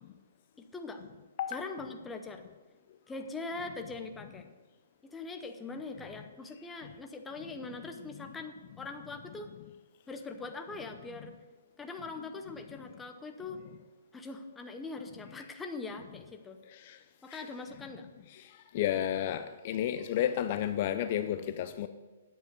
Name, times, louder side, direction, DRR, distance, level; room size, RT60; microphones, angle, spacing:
voice 1, 0.6-1.0 1.5-2.4 3.1-4.5 5.0-9.5 10.1-11.3 11.8-13.6 14.1-16.6 17.2-18.1, left 3 dB, 10° left, 0.7 m, -42 dB
voice 2, 18.7-21.9, left 11 dB, 40° left, 0.4 m, -31 dB
9.3 x 7.9 x 6.6 m
hypercardioid pair, 160°, 0 cm